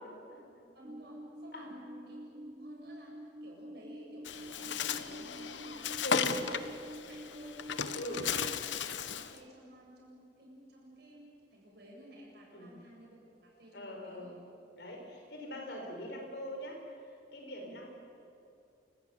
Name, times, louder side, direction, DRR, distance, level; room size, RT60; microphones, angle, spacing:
voice 1, 0.0-0.7 1.5-1.7 6.0-6.4 8.0-8.3 12.5-12.8 13.7-14.3 14.7-17.9, equal, 60° left, 1 dB, 5.2 m, -42 dB
voice 2, 0.7-6.7 7.0-8.7 9.0-14.4 17.6-17.8, equal, 60° right, -2 dB, 7.8 m, -53 dB
sound 1, 0.8-8.5, equal, 30° right, 0.5 m, -48 dB
Bird, 4.2-9.4, left 7 dB, 85° left, 1.0 m, -35 dB
29.0 x 14.0 x 9.3 m, 2.5 s
head